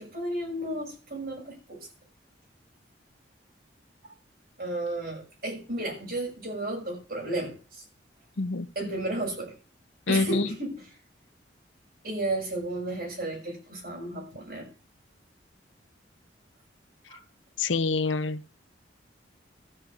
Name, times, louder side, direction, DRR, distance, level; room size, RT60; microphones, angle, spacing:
voice 1, 0.0-1.9 4.0-4.1 4.6-7.8 8.7-9.5 10.1-10.9 12.0-14.7 17.1-17.2, right 1 dB, 50° right, 6.2 m, -33 dB
voice 2, 10.1-10.5 17.6-18.4, left 3 dB, 85° left, 0.8 m, -26 dB
13.5 x 5.0 x 8.0 m
head